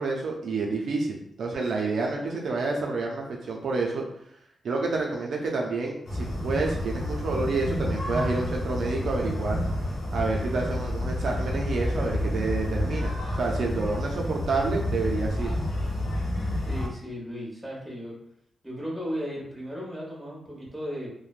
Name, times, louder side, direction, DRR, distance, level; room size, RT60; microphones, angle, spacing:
voice 1, 0.0-4.0 4.6-9.6 10.1-15.5, right 3 dB, 75° right, 0 dB, 0.4 m, -29 dB
sound 1, 6.0-16.9, left 1 dB, 70° left, 0.7 m, -29 dB
voice 2, 16.7-18.1 18.6-21.1, equal, 10° right, -4 dB, 1.1 m, -35 dB
3.1 x 2.0 x 2.4 m, 0.71 s
cardioid pair, 80°, 0 cm